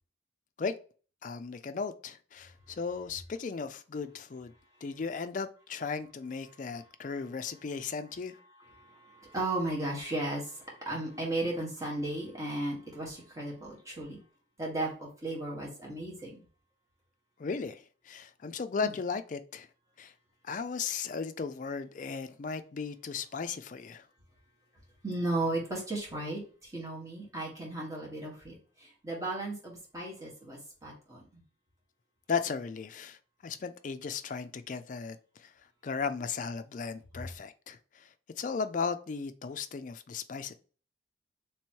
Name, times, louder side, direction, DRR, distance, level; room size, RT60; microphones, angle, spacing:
voice 1, 1.2-4.5 4.8-8.4 17.4-19.7 20.0-20.1 20.4-24.1 32.3-35.5 35.8-38.1 38.4-40.5, left 5 dB, 40° left, 0.3 m, -36 dB
voice 2, 8.6-14.2 14.6-16.4 18.8-18.9 25.0-31.4, right 2 dB, 15° right, 1.4 m, -35 dB
3.4 x 3.0 x 4.4 m
head